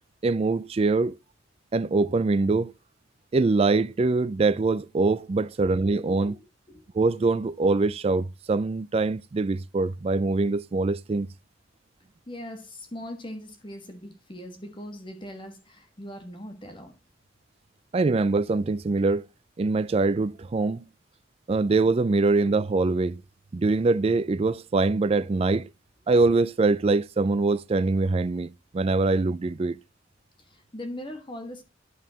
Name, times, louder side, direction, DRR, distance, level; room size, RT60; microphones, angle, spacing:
voice 1, 0.2-1.2 1.7-2.7 3.3-6.4 6.9-11.3 17.9-19.3 19.6-20.8 21.5-23.2 23.5-25.7 26.1-29.8, right 3 dB, 30° right, 0.3 m, -23 dB
voice 2, 6.1-6.8 12.3-16.9 30.5-31.6, left 1 dB, 25° left, 1.5 m, -40 dB
11.0 x 5.6 x 2.8 m
head